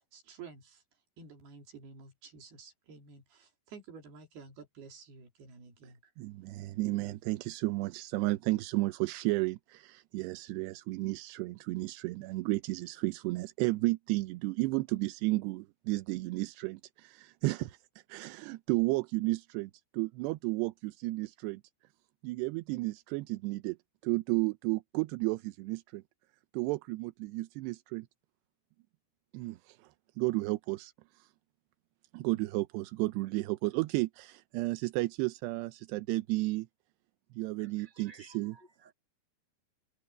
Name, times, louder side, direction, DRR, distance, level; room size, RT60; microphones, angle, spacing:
voice 1, 0.1-0.8 1.2-6.1, right 5 dB, 70° right, 5.2 m, -51 dB
voice 2, 6.2-17.8 18.1-21.6 22.2-23.8 24.0-26.0 26.5-28.1 29.3-29.9 30.2-30.9 32.1-36.7 37.3-38.6, right 21 dB, 85° right, 2.8 m, -33 dB
voice 3, 37.6-38.9, right 2 dB, 10° right, 6.7 m, -57 dB
omnidirectional pair, 4.8 m